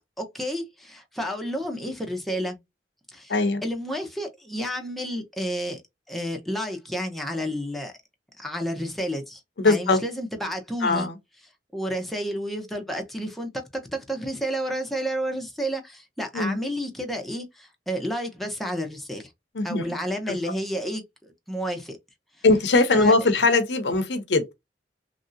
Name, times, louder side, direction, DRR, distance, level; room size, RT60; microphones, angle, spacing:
voice 1, 0.2-2.6 3.1-5.8 6.1-7.9 8.4-11.1 11.7-19.3 19.6-22.0 22.9-23.1, equal, ahead, 0.7 m, -31 dB
voice 2, 3.3-3.6 9.6-10.0 10.8-11.2 16.3-16.6 19.5-19.9 20.3-20.4 22.4-24.5, left 3 dB, 80° left, 0.7 m, -21 dB
3.1 x 2.6 x 2.6 m
head